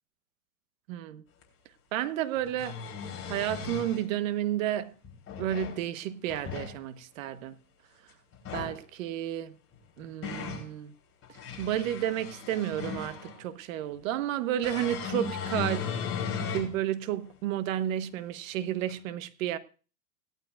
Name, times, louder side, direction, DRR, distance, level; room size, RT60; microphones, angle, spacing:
voice 1, 0.9-1.2 1.9-2.8 3.3-4.9 5.4-7.6 8.5-9.6 10.0-10.9 11.3-15.8 16.5-19.6, right 12 dB, 55° right, 1.3 m, -31 dB
sound 1, 1.4-1.5 2.4-4.0 5.0-5.8 6.2-6.7 8.3-8.8 9.7-10.7 11.2-13.4 14.6-16.7 17.3-17.4 18.9-19.0, left 6 dB, 30° left, 3.6 m, -36 dB
17.0 x 12.0 x 2.5 m
hypercardioid pair, 125°, 46 cm